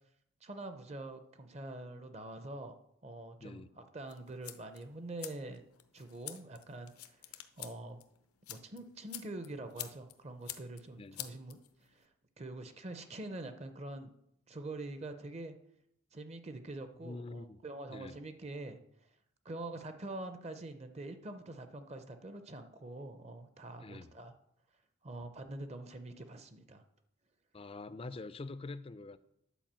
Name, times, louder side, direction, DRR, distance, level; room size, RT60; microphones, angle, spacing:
voice 1, 0.4-2.7 3.0-5.6 5.9-8.0 8.5-11.6 11.9-12.1 12.4-14.1 14.5-15.6 16.1-18.8 19.4-24.3 25.0-26.8, right 2 dB, 30° right, 0.6 m, -45 dB
sound 1, 4.1-12.0, left 13 dB, 90° left, 0.8 m, -49 dB
voice 2, 17.0-17.6 17.9-18.2 23.8-24.1 27.5-29.2, left 3 dB, 25° left, 0.4 m, -45 dB
10.0 x 4.8 x 7.4 m
head